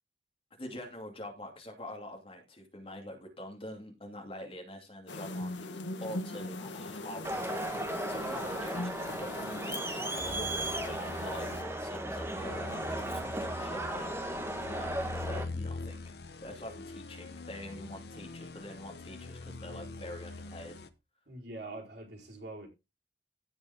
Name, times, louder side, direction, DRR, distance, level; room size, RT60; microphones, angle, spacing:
voice 1, 0.6-16.0 16.4-20.7, left 1 dB, 30° left, 2.6 m, -45 dB
sound 1, 5.1-11.6, left 2 dB, 80° left, 1.3 m, -40 dB
Crowd, 7.2-15.4, right 1 dB, 15° right, 1.4 m, -36 dB
sound 2, 12.4-20.9, left 3 dB, 60° left, 0.9 m, -43 dB
voice 2, 21.3-22.7, right 2 dB, 65° right, 4.3 m, -44 dB
16.0 x 5.4 x 3.6 m
head